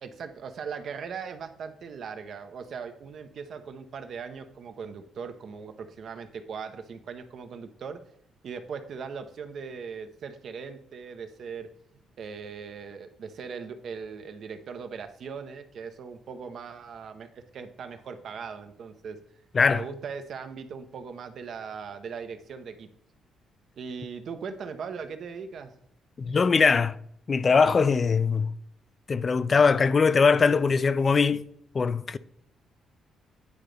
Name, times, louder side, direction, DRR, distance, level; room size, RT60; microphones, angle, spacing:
voice 1, 0.0-8.0 8.4-11.7 12.2-19.2 19.7-22.9 23.8-25.7, right 6 dB, 60° right, 0.7 m, -39 dB
voice 2, 19.5-19.9 26.2-27.0 27.3-28.5 29.1-31.4 31.7-32.2, left 5 dB, 40° left, 0.3 m, -21 dB
9.6 x 3.8 x 3.3 m
cardioid pair, 90°, 0 cm